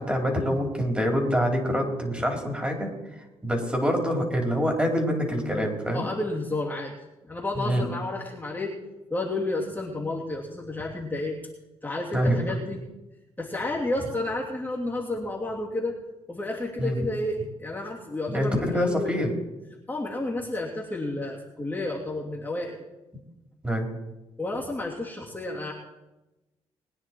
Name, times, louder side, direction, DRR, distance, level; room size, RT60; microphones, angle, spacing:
voice 1, 0.0-2.9 3.4-6.1 7.6-7.8 12.1-12.4 16.8-17.0 18.3-19.3 23.6-23.9, equal, 10° right, 1 dB, 4.2 m, -25 dB
voice 2, 5.9-6.9 7.2-8.8 9.1-11.4 11.8-12.8 13.4-16.0 16.3-19.3 19.9-22.8 24.4-25.7, left 2 dB, 15° left, -4 dB, 2.9 m, -31 dB
21.5 x 9.8 x 4.7 m, 1.0 s
cardioid pair, 90°, 12 cm